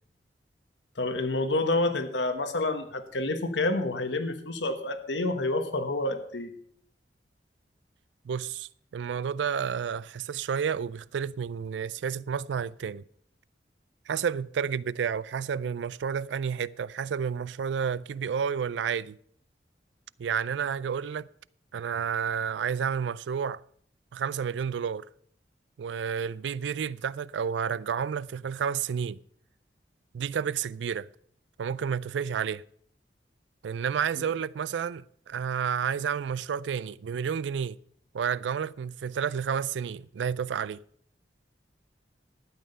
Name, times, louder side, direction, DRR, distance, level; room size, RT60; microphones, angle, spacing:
voice 1, 1.0-6.5, left 2 dB, 85° left, 1.3 m, -28 dB
voice 2, 8.2-13.0 14.1-19.2 20.2-21.3 21.7-23.6 24.1-25.1 25.8-29.2 30.1-31.1 31.6-32.6 33.6-37.8 38.1-40.8, right 7 dB, 85° right, 0.4 m, -30 dB
12.5 x 8.8 x 5.4 m
head